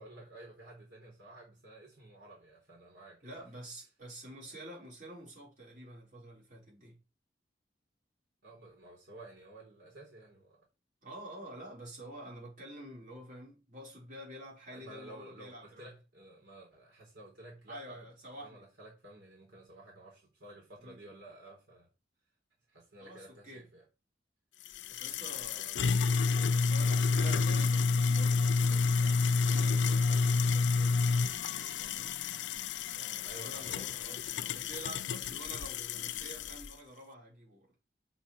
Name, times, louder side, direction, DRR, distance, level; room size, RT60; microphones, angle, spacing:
voice 1, 0.0-4.0 8.4-10.7 14.7-21.9 22.7-23.9 26.3-26.9 33.2-34.9, right 2 dB, 70° right, 3.8 m, -53 dB
voice 2, 3.2-7.0 11.0-15.9 17.7-18.6 20.8-21.2 23.0-23.6 24.9-32.2 33.0-37.7, right 1 dB, 45° right, 5.2 m, -49 dB
sound 1, 24.7-36.7, left 4 dB, 90° left, 0.5 m, -29 dB
7.1 x 6.1 x 7.6 m
head